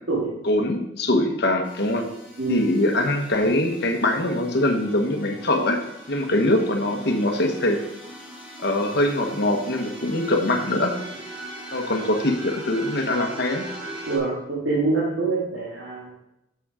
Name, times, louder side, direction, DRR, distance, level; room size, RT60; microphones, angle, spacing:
voice 1, 0.4-2.1 2.5-5.8 6.1-7.8 8.6-10.9 11.7-13.7, left 1 dB, 60° left, 4 dB, 1.2 m, -23 dB
sound 1, 1.6-14.2, right 1 dB, 10° right, 3.5 m, -40 dB
voice 2, 14.1-16.1, right 3 dB, 75° right, -7 dB, 2.2 m, -25 dB
7.0 x 6.3 x 4.8 m, 0.85 s
head